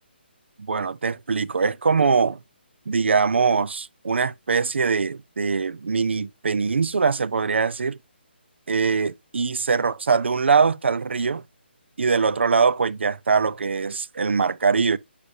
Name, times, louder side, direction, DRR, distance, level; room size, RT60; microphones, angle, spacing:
voice 1, 0.7-2.4 2.9-8.0 8.7-11.4 12.0-15.0, right 5 dB, 80° right, 0.5 m, -22 dB
9.8 x 5.1 x 2.6 m
hypercardioid pair, 160°, 6 cm